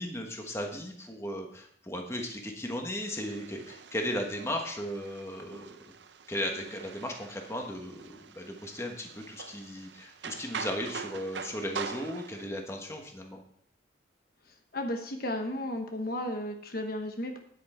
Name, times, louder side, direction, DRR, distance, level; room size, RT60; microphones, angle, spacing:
voice 1, 0.0-5.7 6.3-13.4, left 1 dB, 15° left, 2 dB, 1.3 m, -36 dB
sound 1, 3.0-12.5, right 6 dB, 65° right, 0.6 m, -44 dB
voice 2, 14.7-17.4, left 1 dB, 50° left, 4 dB, 1.1 m, -34 dB
9.8 x 8.4 x 4.4 m, 0.64 s
head